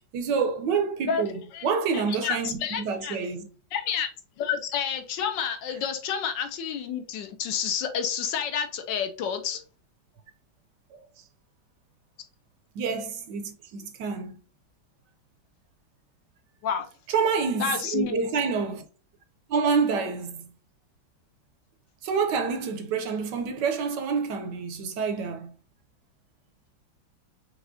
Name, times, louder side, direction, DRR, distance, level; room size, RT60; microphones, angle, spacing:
voice 1, 0.1-3.5 10.9-11.0 12.8-14.4 17.1-18.8 19.5-20.5 22.0-25.5, right 5 dB, 70° right, 1.1 m, -27 dB
voice 2, 1.1-1.7 2.1-3.2 3.7-4.1 4.4-9.6 16.6-16.9 17.6-18.2, left 7 dB, 75° left, 1.2 m, -29 dB
5.3 x 3.0 x 2.6 m
omnidirectional pair, 2.1 m